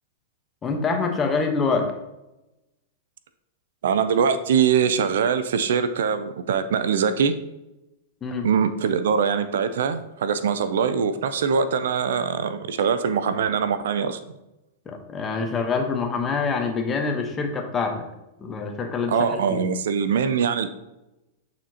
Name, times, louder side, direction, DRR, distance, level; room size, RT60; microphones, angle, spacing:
voice 1, 0.6-1.9 8.2-8.5 14.9-18.1 18.4-19.6, left 4 dB, 25° left, 4 dB, 1.1 m, -25 dB
voice 2, 3.8-7.3 8.4-14.2 19.1-20.7, right 6 dB, 75° right, 12 dB, 0.5 m, -22 dB
8.8 x 4.3 x 2.9 m, 0.96 s
hypercardioid pair, 110°, 0 cm